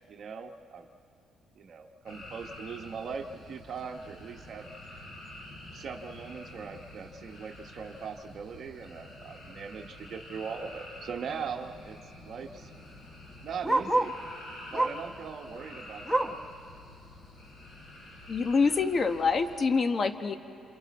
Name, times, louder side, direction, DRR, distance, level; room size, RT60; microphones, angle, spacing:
voice 1, 0.1-0.9 1.6-5.0 5.7-12.7 13.4-14.2 14.7-16.4, right 6 dB, 60° right, 4 dB, 1.1 m, -40 dB
sound 1, 2.0-19.6, left 1 dB, 80° left, 5.9 m, -48 dB
Bark, 10.5-10.8 11.1-11.2 11.4-14.2 14.7-15.1 15.5-16.5 17.0-17.1 17.5-17.6 18.2-18.3, right 1 dB, ahead, 1.0 m, -30 dB
voice 2, 18.3-20.3, left 4 dB, 45° left, 9 dB, 1.1 m, -26 dB
28.0 x 28.0 x 4.2 m, 2.6 s
cardioid pair, 90°, 0 cm